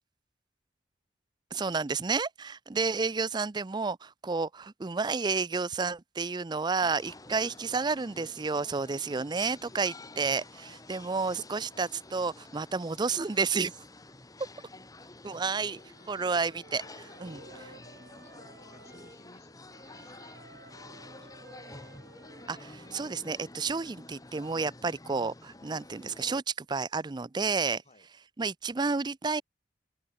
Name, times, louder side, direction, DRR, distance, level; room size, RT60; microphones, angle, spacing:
voice 1, 1.5-10.6 10.9-13.7 15.2-15.8 16.1-17.4 22.5-27.8 28.4-29.4, right 4 dB, 25° right, 0.4 m, -31 dB
voice 2, 2.7-3.2 7.4-7.6 10.5-12.0 15.3-15.9 17.2-21.3 27.8-28.1, left 1 dB, 35° left, 7.1 m, -59 dB
sound 1, 6.8-26.4, left 2 dB, 20° left, 1.7 m, -50 dB
Wind instrument woodwind instrument, 15.8-19.2 19.7-23.5, right 3 dB, 60° right, 6.3 m, -55 dB
open air
head